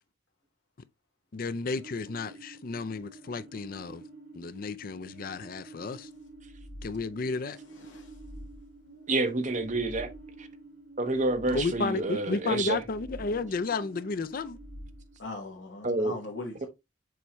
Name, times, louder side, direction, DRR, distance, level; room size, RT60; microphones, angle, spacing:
voice 1, 1.3-4.0 4.3-6.1 6.8-7.6 11.5-14.6, left 3 dB, 50° left, 0.4 m, -32 dB
sound 1, 1.7-15.8, right 3 dB, 70° right, 2.1 m, -50 dB
sound 2, 6.3-7.4 7.9-9.0 9.5-10.5 11.1-12.2 12.6-13.7 14.3-15.4, equal, 30° left, 0.8 m, -48 dB
voice 2, 7.8-8.1 15.2-16.7, left 2 dB, 75° left, 1.4 m, -39 dB
voice 3, 9.1-10.1 10.4-10.5 11.0-12.8 15.8-16.2, right 2 dB, 40° right, 1.0 m, -28 dB
7.0 x 4.5 x 3.0 m
head